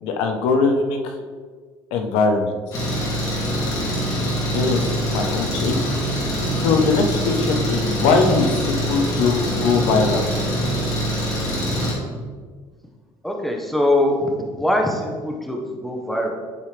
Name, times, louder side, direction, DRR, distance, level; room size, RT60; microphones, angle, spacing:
voice 1, 0.0-1.1 1.9-2.5 4.5-5.8 6.2-10.3, left 4 dB, 90° left, 4 dB, 1.0 m, -21 dB
Engine, 2.7-11.9, equal, 40° left, 2.3 m, -24 dB
voice 2, 13.2-14.3 14.6-16.3, left 1 dB, ahead, 1 dB, 0.9 m, -22 dB
11.5 x 4.4 x 3.3 m, 1.5 s
cardioid pair, 150°, 9 cm